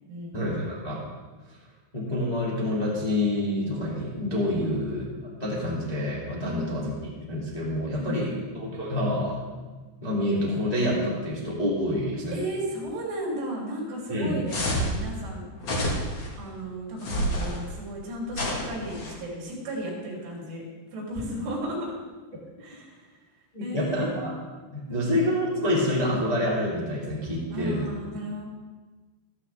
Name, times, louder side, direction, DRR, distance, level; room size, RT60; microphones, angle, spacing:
voice 1, 0.3-1.0 1.9-5.1 5.4-6.9 7.3-9.4 10.0-12.3 14.1-14.4 23.5-24.3 24.7-27.9, left 1 dB, 15° left, -6 dB, 1.4 m, -27 dB
voice 2, 6.4-7.0 8.0-8.4 12.3-15.4 16.4-20.6 20.9-21.9 22.6-23.1 23.6-24.2 24.8-25.2 27.5-28.5, right 1 dB, 85° right, -3 dB, 5.7 m, -34 dB
sound 1, 14.5-15.0 15.6-16.3 17.0-17.6 18.3-19.1, equal, 45° left, 1.6 m, -28 dB
14.0 x 14.0 x 3.5 m, 1.3 s
omnidirectional pair, 5.4 m